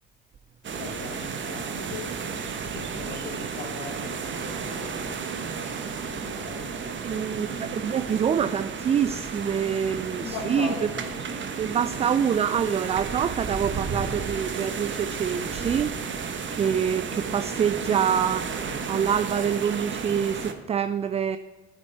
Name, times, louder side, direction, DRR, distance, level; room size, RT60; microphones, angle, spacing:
sound 1, 0.6-20.5, right 5 dB, 35° right, 1.1 m, -33 dB
voice 1, 0.8-2.1 2.7-5.4 6.0-8.1 10.1-11.4, left 5 dB, 55° left, -3 dB, 1.9 m, -40 dB
voice 2, 7.0-10.7 11.6-15.9 16.5-18.5 18.9-21.4, right 8 dB, 20° right, 12 dB, 0.4 m, -26 dB
10.0 x 9.0 x 4.3 m, 1.4 s
hypercardioid pair, 65°, 33 cm